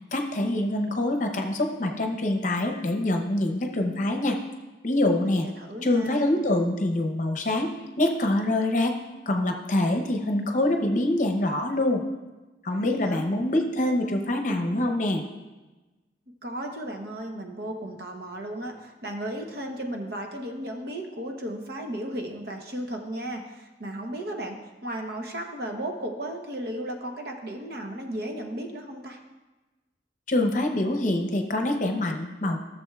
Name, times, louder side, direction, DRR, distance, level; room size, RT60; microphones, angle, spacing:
voice 1, 0.1-4.4 4.8-5.5 5.8-7.7 8.0-8.9 9.3-12.0 12.6-15.2 30.3-32.6, left 1 dB, 45° left, 4 dB, 0.8 m, -25 dB
voice 2, 5.2-6.4 12.7-13.2 16.4-29.2, right 1 dB, 60° right, 3 dB, 0.9 m, -35 dB
14.0 x 6.9 x 2.4 m, 1.1 s
head